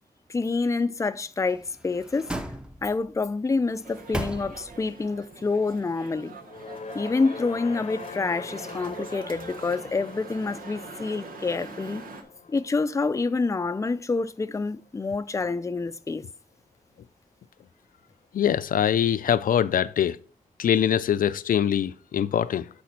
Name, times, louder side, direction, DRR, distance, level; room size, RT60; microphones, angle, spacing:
voice 1, 0.3-2.3 2.8-6.4 6.9-12.0 12.5-16.3, left 3 dB, 20° left, 0.5 m, -27 dB
sound 1, 1.4-3.1 3.7-5.0 5.3-5.4, right 1 dB, 5° right, 0.7 m, -36 dB
sound 2, 3.8-12.2, right 4 dB, 80° right, 1.3 m, -43 dB
sound 3, 6.4-14.8, left 5 dB, 55° left, 0.7 m, -43 dB
voice 2, 18.3-20.2 20.6-22.7, left 9 dB, 80° left, 0.4 m, -23 dB
8.5 x 4.3 x 5.8 m
wide cardioid pair, 115°, 14 cm